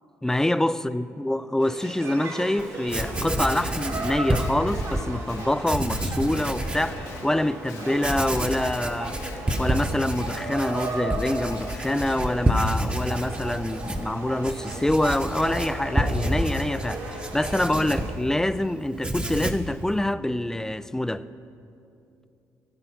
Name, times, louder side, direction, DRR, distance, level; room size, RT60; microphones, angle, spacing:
voice 1, 0.2-21.2, left 1 dB, 5° left, 0.4 m, -26 dB
sound 1, 1.6-18.2, right 2 dB, 65° right, 2.3 m, -36 dB
Writing, 2.6-2.7 2.9-5.1 5.6-6.9 7.4-7.5 8.0-18.6 18.9-19.7, right 1 dB, 15° right, 1.0 m, -29 dB
Guitar, 2.9-7.3 7.7-12.2, left 4 dB, 85° left, 1.8 m, -46 dB
14.5 x 8.0 x 5.8 m
supercardioid pair, 70°, 7 cm